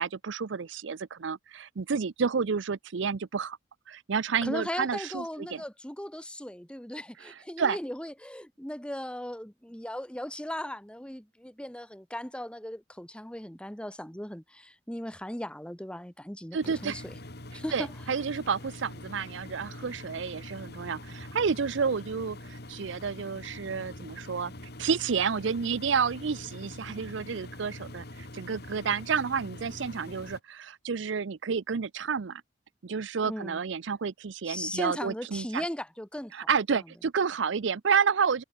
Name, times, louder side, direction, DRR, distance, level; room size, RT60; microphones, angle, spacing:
voice 1, 0.0-3.6 3.9-5.2 5.5-5.6 7.2-7.8 16.5-17.0 17.7-24.5 24.8-28.0 28.3-32.4 32.8-35.6 36.3-38.4, right 6 dB, 65° right, 0.5 m, -30 dB
voice 2, 4.4-17.2 17.5-17.9 33.2-33.6 34.4-36.3 36.7-36.8, left 1 dB, 5° left, 1.5 m, -37 dB
Engine, 16.6-30.4, left 1 dB, 55° left, 3.4 m, -44 dB
head